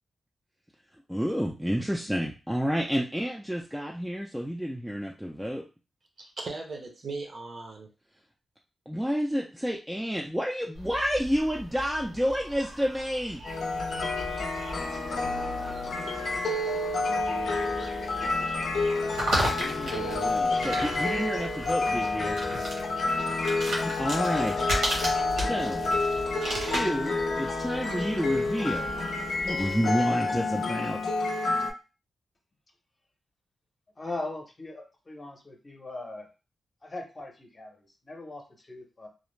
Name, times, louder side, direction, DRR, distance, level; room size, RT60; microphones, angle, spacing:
voice 1, 1.1-5.6 8.9-13.4 19.5-22.4 23.8-24.7 25.3-25.8 26.5-28.9 29.4-31.0, equal, 5° right, -1 dB, 0.3 m, -30 dB
voice 2, 6.2-7.9 15.0-18.1, right 3 dB, 50° right, 2 dB, 0.6 m, -42 dB
sound 1, 10.7-29.7, equal, 85° right, 1.2 m, -36 dB
sound 2, 13.4-31.7, left 3 dB, 80° left, 0.5 m, -29 dB
voice 3, 34.0-36.3 36.8-39.1, left 2 dB, 30° left, 1 dB, 0.7 m, -40 dB
2.4 x 2.1 x 3.1 m, 0.31 s
wide cardioid pair, 115°, 0 cm